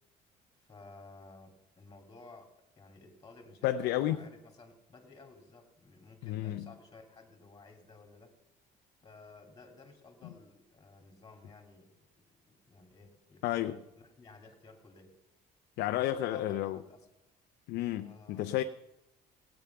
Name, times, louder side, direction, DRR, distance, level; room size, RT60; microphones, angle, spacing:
voice 1, 0.6-8.4 9.0-15.2 15.9-17.1 18.0-18.5, left 3 dB, 25° left, 3 dB, 2.6 m, -55 dB
voice 2, 3.6-4.2 6.2-6.7 13.4-13.8 15.8-16.8 17.7-18.6, left 13 dB, 85° left, 7 dB, 0.6 m, -31 dB
16.5 x 8.9 x 5.8 m, 0.92 s
cardioid pair, 110°, 17 cm